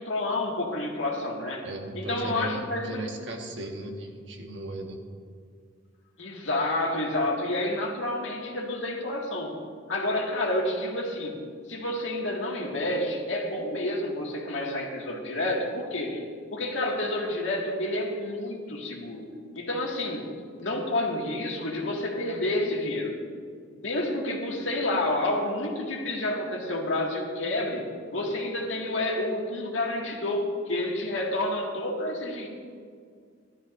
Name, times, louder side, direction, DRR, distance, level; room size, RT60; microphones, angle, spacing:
voice 1, 0.0-1.7 1.9-3.1 6.2-9.6 9.9-11.4 11.7-16.2 16.5-19.3 19.5-20.2 20.6-23.2 23.7-27.8 28.1-32.5, left 1 dB, 85° left, -1 dB, 2.0 m, -29 dB
voice 2, 1.6-5.0, right 1 dB, 70° right, 1 dB, 1.5 m, -36 dB
15.5 x 13.0 x 2.6 m, 2.1 s
head